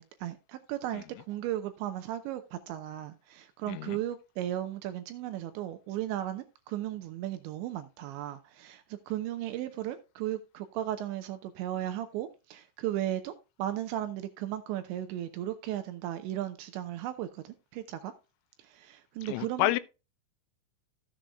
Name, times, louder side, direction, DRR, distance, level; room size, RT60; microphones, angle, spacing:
voice 1, 0.0-13.3 13.6-18.1 18.6-19.7, right 12 dB, 80° right, 2.8 m, -36 dB
voice 2, 3.7-4.0 19.2-19.8, left 16 dB, 90° left, 3.3 m, -29 dB
15.0 x 7.7 x 2.3 m
omnidirectional pair, 5.8 m